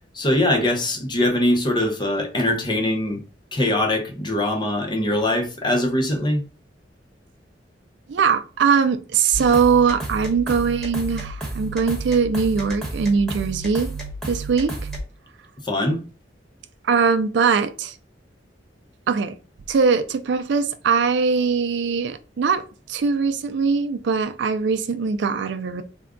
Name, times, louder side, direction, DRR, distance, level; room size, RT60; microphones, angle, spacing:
voice 1, 0.1-3.2 3.5-6.4 15.6-16.0, left 1 dB, 25° left, 0.7 m, -22 dB
voice 2, 8.1-13.9 14.3-14.8 16.8-17.9 19.1-19.3 19.7-22.6 22.9-25.8, right 5 dB, 70° right, 0.4 m, -21 dB
sound 1, 9.3-15.0, right 2 dB, ahead, 1.1 m, -31 dB
3.5 x 2.2 x 3.6 m
head